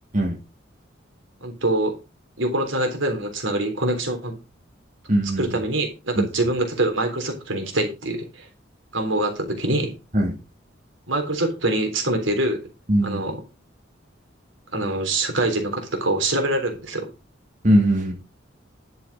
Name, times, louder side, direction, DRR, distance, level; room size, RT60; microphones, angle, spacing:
voice 1, 1.4-2.0 2.4-4.3 5.4-8.5 8.9-10.0 11.1-12.6 13.0-13.4 14.7-17.1, right 2 dB, 80° right, 5 dB, 3.7 m, -24 dB
voice 2, 5.1-5.5 6.2-6.3 10.1-10.4 12.9-13.2 17.6-18.1, right 1 dB, 45° right, 1 dB, 2.7 m, -20 dB
11.0 x 7.5 x 5.0 m, 0.28 s
head